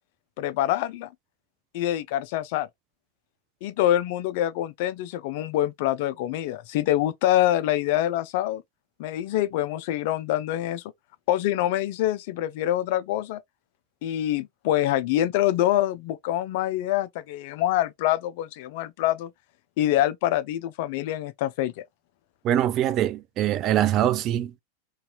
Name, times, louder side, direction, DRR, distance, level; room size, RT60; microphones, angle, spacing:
voice 1, 0.4-1.1 1.7-2.7 3.6-8.6 9.0-10.8 11.3-13.4 14.0-19.3 19.8-21.8, left 13 dB, 55° left, 0.4 m, -25 dB
voice 2, 22.4-24.6, right 11 dB, 40° right, 0.4 m, -23 dB
2.8 x 2.4 x 2.3 m
hypercardioid pair, 95°, 0 cm